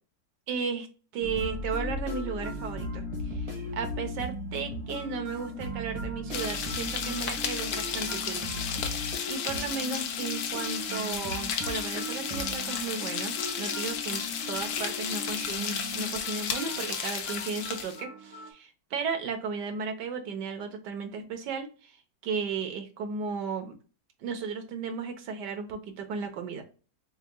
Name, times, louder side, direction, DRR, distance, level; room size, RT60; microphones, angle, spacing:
voice 1, 0.5-0.9 1.1-3.5 3.7-8.5 8.9-22.0 22.2-23.8 24.2-26.6, right 5 dB, 85° right, 5 dB, 1.6 m, -35 dB
sound 1, 1.2-18.5, left 1 dB, 25° right, 1.2 m, -38 dB
sound 2, 6.3-18.0, left 7 dB, 85° left, 1.4 m, -33 dB
4.9 x 3.7 x 2.2 m, 0.35 s
omnidirectional pair, 1.8 m